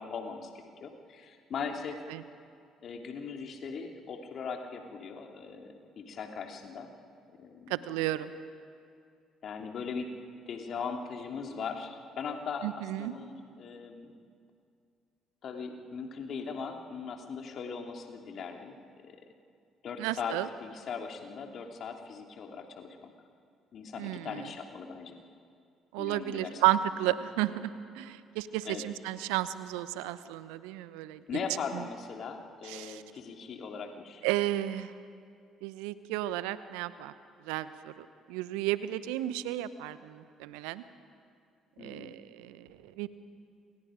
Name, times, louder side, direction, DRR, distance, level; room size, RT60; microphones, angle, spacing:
voice 1, 0.0-2.0 2.8-6.9 7.4-7.8 9.4-10.1 10.5-14.1 15.4-19.2 19.8-23.1 23.7-25.2 26.0-26.6 28.6-28.8 31.3-34.2 41.8-42.1, left 5 dB, 50° left, 3 dB, 2.9 m, -39 dB
voice 2, 7.7-8.3 12.6-13.1 20.0-20.5 24.0-24.5 25.9-31.2 31.7-31.8 32.7-33.0 34.2-34.9 35.6-37.1 37.5-40.8 41.8-43.1, right 14 dB, 70° right, 14 dB, 0.9 m, -33 dB
29.0 x 27.5 x 5.1 m, 2.3 s
hypercardioid pair, 50°, 0 cm